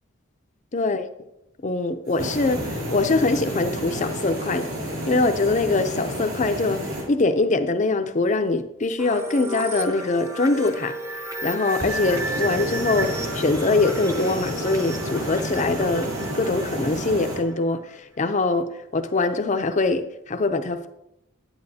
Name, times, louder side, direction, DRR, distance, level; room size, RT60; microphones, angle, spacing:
voice 1, 0.7-1.1 1.6-16.1 16.3-20.9, left 3 dB, 35° left, 8 dB, 0.5 m, -23 dB
sound 1, 2.1-7.1 11.6-17.4, equal, 70° right, 2.6 m, -30 dB
sound 2, 9.0-17.6, right 1 dB, 15° right, 0.7 m, -33 dB
9.7 x 8.9 x 2.8 m, 0.85 s
head